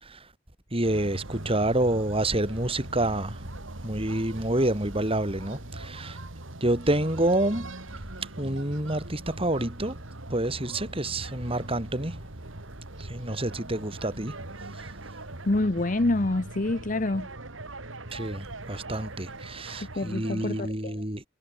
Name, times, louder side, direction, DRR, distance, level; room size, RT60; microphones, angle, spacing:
voice 1, 0.7-3.4 3.8-6.2 6.6-7.7 8.4-10.0 10.3-12.2 13.0-14.4 14.8-14.9 18.1-21.2, right 1 dB, 30° right, 4.3 m, -28 dB
sound 1, 0.8-20.7, right 2 dB, 75° right, 2.9 m, -41 dB
voice 2, 15.5-17.3 20.0-21.0, left 2 dB, 40° left, 0.9 m, -26 dB
head